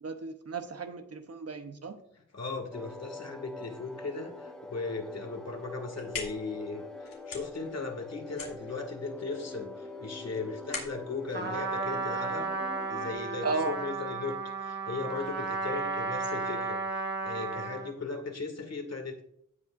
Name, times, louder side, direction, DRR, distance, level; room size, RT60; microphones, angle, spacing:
voice 1, 0.0-2.0 13.4-13.8, right 3 dB, 45° right, 7 dB, 1.0 m, -34 dB
voice 2, 2.1-12.5 12.9-19.2, left 4 dB, 50° left, 4 dB, 2.2 m, -37 dB
sound 1, 2.7-13.1, left 2 dB, 5° left, 2.0 m, -44 dB
sound 2, 5.7-12.6, left 4 dB, 80° left, 2.7 m, -44 dB
Trumpet, 11.3-17.9, right 4 dB, 30° right, 1.5 m, -34 dB
17.0 x 5.6 x 2.6 m, 0.70 s
wide cardioid pair, 105°, 33 cm